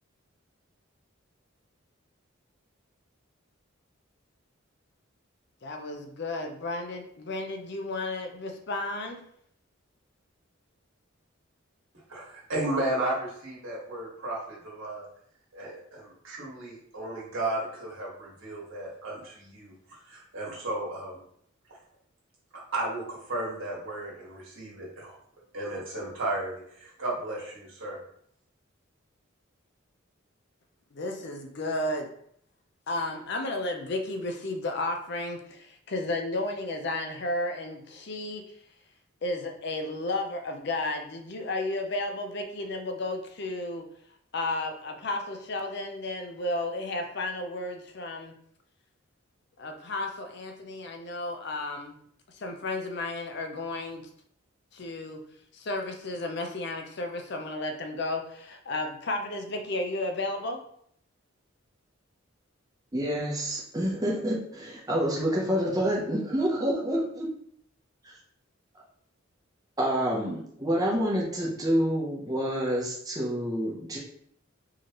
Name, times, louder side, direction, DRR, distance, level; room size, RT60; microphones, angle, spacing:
voice 1, 5.6-9.2 30.9-32.1 32.9-38.4 39.2-43.8 44.3-48.3 49.6-51.9 52.3-54.0 54.7-55.2 55.5-60.6, left 2 dB, 55° left, 4 dB, 0.6 m, -33 dB
voice 2, 12.1-15.1 15.5-19.7 20.1-21.2 22.5-25.2 25.5-28.0, right 1 dB, 70° right, -5 dB, 1.7 m, -34 dB
voice 3, 62.9-67.3 68.0-68.1 69.8-74.0, equal, 20° right, -3 dB, 0.8 m, -28 dB
4.7 x 3.1 x 2.9 m, 0.67 s
head